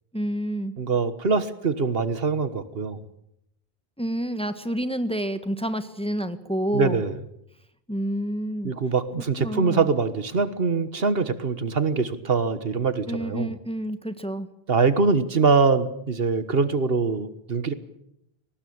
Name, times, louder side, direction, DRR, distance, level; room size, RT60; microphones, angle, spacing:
voice 1, 0.1-0.7 4.0-7.0 7.9-8.7 9.4-9.9 13.1-14.5, right 1 dB, 5° left, 10 dB, 1.4 m, -28 dB
voice 2, 0.8-3.0 6.7-7.1 8.6-13.5 14.7-17.7, right 4 dB, 70° right, 13 dB, 1.6 m, -23 dB
22.5 x 19.0 x 8.7 m, 0.77 s
omnidirectional pair, 1.0 m